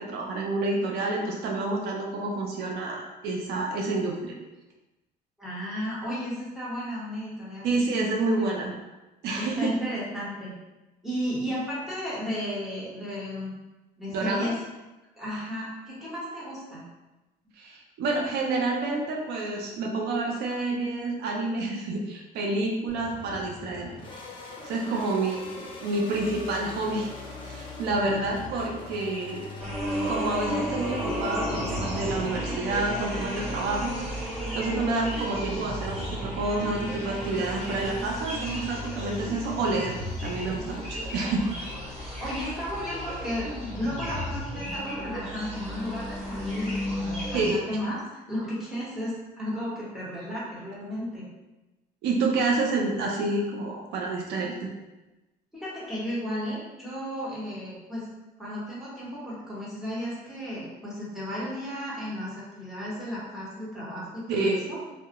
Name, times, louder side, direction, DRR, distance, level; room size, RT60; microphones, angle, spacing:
voice 1, 0.0-4.3 7.6-8.7 9.2-9.7 14.1-14.5 17.6-23.9 24.6-27.1 27.4-29.5 30.1-33.9 34.2-41.4 47.3-47.6 52.0-54.7 64.3-64.8, right 2 dB, 75° right, 0 dB, 0.4 m, -29 dB
voice 2, 5.4-7.7 7.9-8.1 8.4-8.5 9.4-10.5 11.0-13.5 14.0-14.6 15.2-16.8 24.9-25.0 27.9-28.3 42.2-43.5 43.7-51.3 55.5-58.1 58.4-64.8, equal, ahead, -8 dB, 1.0 m, -34 dB
sound 1, 22.9-42.1, left 2 dB, 30° left, 0.5 m, -47 dB
sound 2, 26.1-44.1, left 4 dB, 80° left, 0.4 m, -44 dB
sound 3, 29.6-47.5, equal, 40° right, 1.0 m, -33 dB
2.2 x 2.1 x 2.8 m, 1.1 s
cardioid pair, 110°, 17 cm